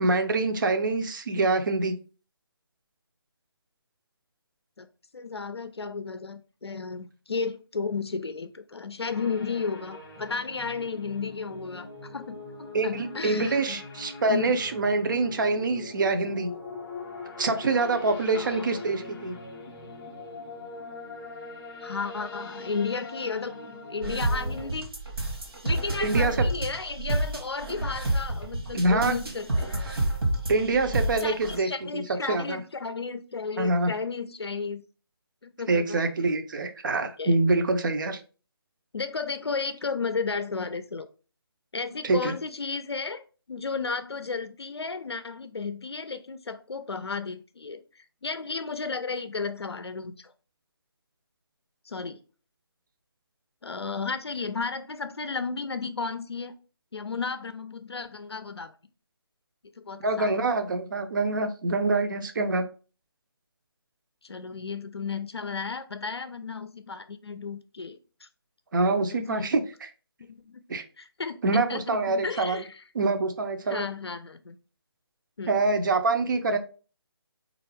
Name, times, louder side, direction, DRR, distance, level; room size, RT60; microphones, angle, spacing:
voice 1, 0.0-1.9 12.7-16.5 17.4-19.4 26.0-26.3 28.7-29.1 30.5-32.0 32.3-32.6 33.6-33.9 35.7-38.2 42.0-42.3 60.0-62.7 68.7-69.9 70.7-70.8 71.4-72.6 72.9-73.9 75.5-76.6, right 3 dB, 50° right, 7 dB, 0.5 m, -25 dB
voice 2, 5.1-13.8 14.3-14.6 18.3-18.8 21.8-23.6 23.9-24.9 25.6-29.8 31.2-34.8 35.4-36.3 37.2-37.4 38.9-41.1 41.7-43.2 43.5-50.3 51.8-52.2 53.6-56.5 56.9-58.7 59.8-60.4 64.2-68.3 69.1-69.5 70.3-70.6 71.0-72.8 73.7-74.6 75.4-75.6, left 4 dB, 85° left, 11 dB, 0.4 m, -33 dB
sound 1, 9.1-24.7, left 3 dB, 10° left, 0.5 m, -42 dB
sound 2, 24.0-31.6, right 1 dB, 70° right, 1.1 m, -29 dB
4.3 x 2.4 x 3.2 m, 0.36 s
figure-of-eight pair, 150°, 13 cm